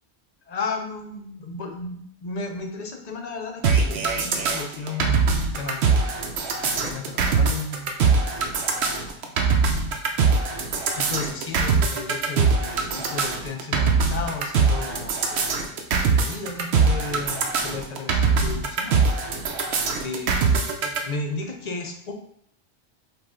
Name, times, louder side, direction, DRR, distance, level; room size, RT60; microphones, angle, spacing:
voice 1, 0.5-6.0 6.3-8.0 8.7-9.6 10.9-15.6 16.0-19.1 19.5-20.7 21.0-22.1, left 3 dB, 45° left, 4 dB, 0.6 m, -34 dB
sound 1, 3.6-21.0, right 5 dB, 85° right, 0.9 m, -22 dB
5.2 x 2.4 x 3.7 m, 0.68 s
omnidirectional pair, 1.1 m